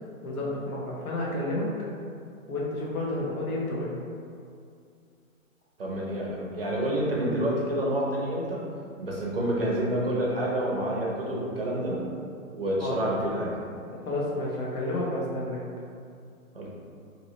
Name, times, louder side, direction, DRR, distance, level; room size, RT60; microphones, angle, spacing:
voice 1, 0.2-1.7 2.5-3.9 12.8-13.0 14.0-15.6, left 1 dB, 85° left, -4 dB, 1.0 m, -30 dB
voice 2, 5.8-8.6 9.0-12.0 12.5-13.5 16.5-16.7, right 1 dB, 45° right, -4 dB, 0.5 m, -28 dB
2.8 x 2.8 x 2.8 m, 2.4 s
hypercardioid pair, 180°, 42 cm